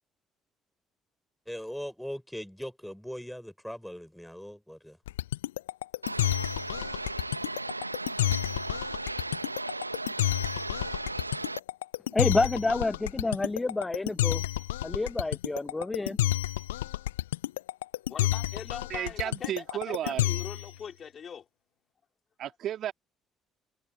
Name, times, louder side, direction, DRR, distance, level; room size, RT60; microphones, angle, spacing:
voice 1, 1.5-5.0, equal, ahead, 6.4 m, -40 dB
sound 1, 5.1-20.7, left 15 dB, 75° left, 1.0 m, -30 dB
sound 2, 6.0-11.6, right 2 dB, 90° right, 1.7 m, -36 dB
voice 2, 12.1-14.4 14.8-16.2, left 2 dB, 20° left, 0.3 m, -28 dB
voice 3, 18.1-19.5 19.9-21.5, left 7 dB, 40° left, 3.5 m, -42 dB
voice 4, 18.9-20.3 22.4-22.9, right 11 dB, 50° right, 3.4 m, -33 dB
figure-of-eight pair, 50°, 0 cm